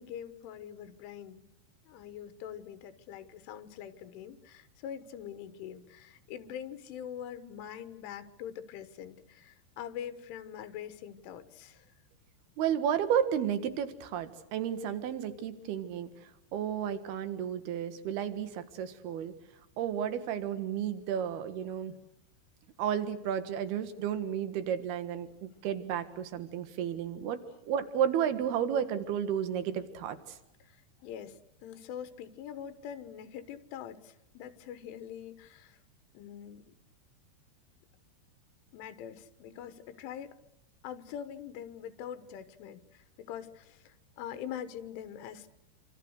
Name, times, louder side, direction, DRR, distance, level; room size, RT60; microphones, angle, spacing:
voice 1, 0.0-1.5 1.9-11.9 30.6-35.8 36.2-36.8 38.7-40.4 40.8-45.5, left 9 dB, 90° left, 12 dB, 3.8 m, -44 dB
voice 2, 12.6-16.1 16.5-19.3 19.8-21.9 22.8-27.4 27.7-30.4, right 9 dB, 65° right, 11 dB, 3.3 m, -32 dB
27.5 x 26.5 x 6.5 m, 0.83 s
omnidirectional pair, 5.4 m